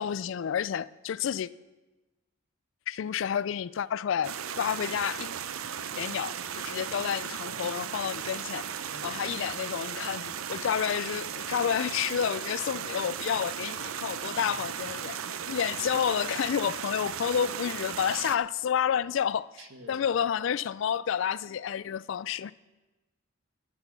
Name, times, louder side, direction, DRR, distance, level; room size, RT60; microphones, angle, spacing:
voice 1, 0.0-1.5 2.9-5.3 6.0-8.7 9.0-19.5 19.9-22.5, left 8 dB, 65° left, 0.3 m, -30 dB
sound 1, 4.2-18.4, right 8 dB, 85° right, 0.6 m, -36 dB
voice 2, 8.9-9.5 14.3-15.0 19.6-20.0, right 1 dB, 60° right, 1.4 m, -49 dB
11.0 x 10.5 x 6.1 m
head